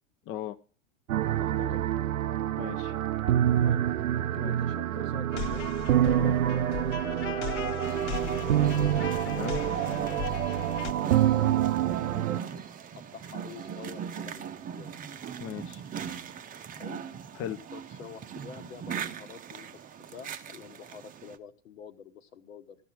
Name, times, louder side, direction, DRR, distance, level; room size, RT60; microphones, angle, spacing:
voice 1, 0.3-0.6 2.6-3.0 4.4-4.6 6.1-6.3 9.2-9.6 15.4-15.8 17.3-17.6, left 11 dB, 30° left, 10 dB, 0.6 m, -37 dB
sound 1, 1.1-12.4, right 11 dB, 85° right, 0.6 m, -27 dB
voice 2, 1.3-1.9 3.6-3.9 4.1-5.6 6.8-8.7 10.9-12.6 13.0-14.9 16.7-17.0 17.7-22.8, left 7 dB, 75° left, 9 dB, 1.4 m, -47 dB
sound 2, 5.3-10.9, left 8 dB, 60° left, 1.2 m, -37 dB
sound 3, 7.8-21.4, right 8 dB, 20° right, 0.7 m, -40 dB
13.0 x 6.3 x 5.9 m, 0.41 s
hypercardioid pair, 100°, 40 cm